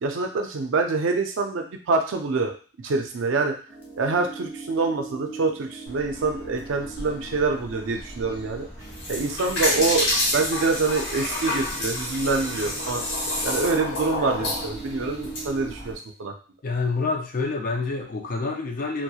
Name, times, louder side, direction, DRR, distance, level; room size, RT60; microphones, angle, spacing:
voice 1, 0.0-2.5 2.8-3.5 4.0-8.7 9.1-13.0 13.4-16.3, right 3 dB, 75° right, 4 dB, 0.4 m, -26 dB
sound 1, 3.7-16.0, right 4 dB, 10° right, 0.5 m, -42 dB
sound 2, 5.9-15.9, equal, 20° left, 0.8 m, -42 dB
sound 3, 8.8-15.4, left 1 dB, 65° left, 1.1 m, -28 dB
voice 2, 16.6-19.0, left 3 dB, 45° left, 2 dB, 0.4 m, -27 dB
2.8 x 2.0 x 2.3 m, 0.38 s
head